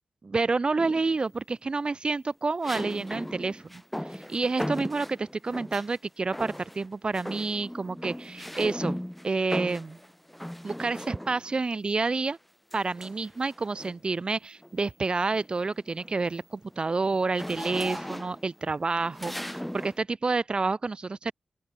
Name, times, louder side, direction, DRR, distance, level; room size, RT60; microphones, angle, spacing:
voice 1, 0.2-3.8 4.1-9.0 9.2-10.0 10.6-12.4 12.7-21.3, right 3 dB, 45° right, 0.9 m, -29 dB
sound 1, 0.8-1.3 2.6-6.0 6.3-6.9 7.1-11.6 12.7-14.1 14.6-14.9 15.2-20.0, equal, 5° left, 6.0 m, -37 dB
open air
cardioid pair, 45°, 2 cm